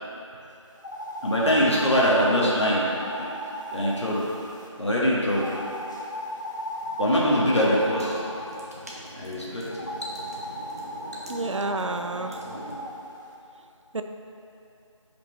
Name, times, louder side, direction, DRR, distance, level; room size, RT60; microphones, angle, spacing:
sound 1, 0.8-4.7 5.3-8.6 9.7-12.9, left 1 dB, 35° left, 0.8 m, -36 dB
voice 1, 1.2-2.8 3.2-3.3 3.7-4.2 4.8-5.5 7.0-8.2 9.2-9.6, equal, 60° left, -6 dB, 1.5 m, -22 dB
sound 2, 7.4-12.8, right 1 dB, 30° right, 0.8 m, -42 dB
voice 2, 11.3-12.4 13.9-14.0, right 3 dB, 65° right, 7 dB, 0.5 m, -29 dB
9.7 x 5.1 x 3.2 m, 2.8 s
figure-of-eight pair, 170°, 17 cm